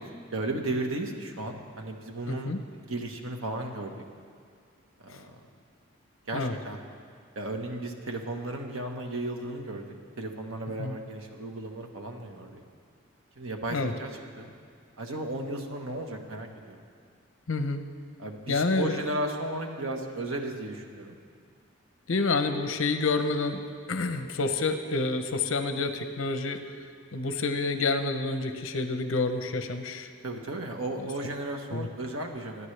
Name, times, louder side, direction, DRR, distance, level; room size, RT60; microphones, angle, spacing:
voice 1, 0.3-4.0 5.0-5.4 6.3-6.8 7.3-9.8 10.2-12.6 13.4-14.1 14.4-14.5 15.0-16.8 18.2-21.1 30.2-32.7, right 2 dB, 80° right, 3 dB, 1.3 m, -35 dB
voice 2, 2.3-2.6 5.1-5.2 6.3-6.5 10.8-11.0 13.7-13.9 17.5-17.8 18.5-19.0 22.1-23.6 23.9-26.6 27.1-30.1 31.7-31.9, left 3 dB, 75° left, 8 dB, 0.8 m, -28 dB
24.5 x 9.7 x 3.3 m, 2.2 s
head